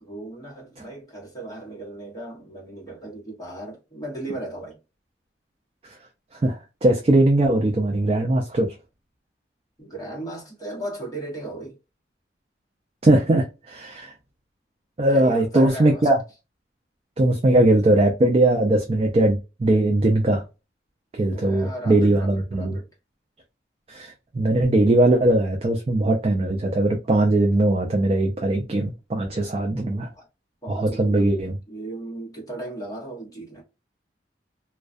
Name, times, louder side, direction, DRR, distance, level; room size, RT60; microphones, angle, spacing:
voice 1, 0.0-4.8 9.8-11.8 15.1-16.1 21.2-22.9 30.1-30.3 30.6-31.3 31.7-33.6, right 1 dB, 20° left, 1.0 m, -36 dB
voice 2, 6.4-8.7 13.0-14.1 15.0-16.2 17.2-20.4 21.1-22.8 23.9-30.1 30.7-31.5, right 1 dB, 35° right, 0.4 m, -20 dB
2.3 x 2.2 x 2.4 m
head